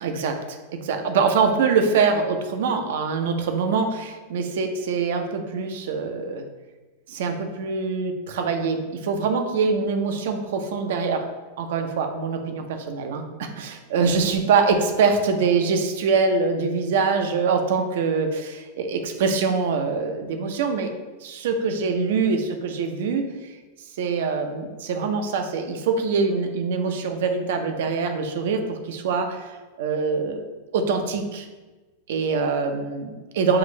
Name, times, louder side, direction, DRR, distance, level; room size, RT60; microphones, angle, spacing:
voice 1, 0.0-6.4 7.1-11.2 11.6-20.9 21.2-23.5 24.0-29.5 29.8-30.4 30.7-31.5 32.1-33.6, right 5 dB, 70° right, 5 dB, 0.6 m, -24 dB
5.7 x 2.5 x 3.2 m, 1.2 s
hypercardioid pair, 100°, 0 cm